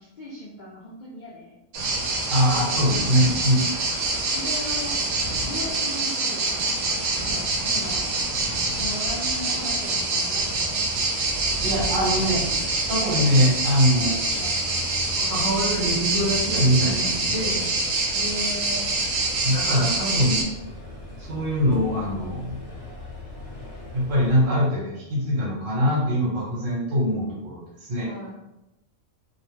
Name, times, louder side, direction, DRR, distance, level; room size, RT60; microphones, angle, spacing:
voice 1, 0.0-1.5 3.0-3.6 4.3-5.0 5.4-8.0 8.7-10.6 14.3-14.6 18.1-18.9 28.1-28.3, left 1 dB, 80° left, -4 dB, 0.4 m, -37 dB
sound 1, 1.7-20.4, right 2 dB, 80° right, 1.1 m, -25 dB
voice 2, 2.3-3.6 11.6-12.4 12.9-14.2 15.2-17.7 19.4-20.4 21.2-22.6 23.9-28.1, equal, 65° right, -4 dB, 1.3 m, -23 dB
sound 2, 11.3-24.5, left 2 dB, 30° left, 1.1 m, -39 dB
2.9 x 2.0 x 3.1 m, 0.95 s
omnidirectional pair, 1.4 m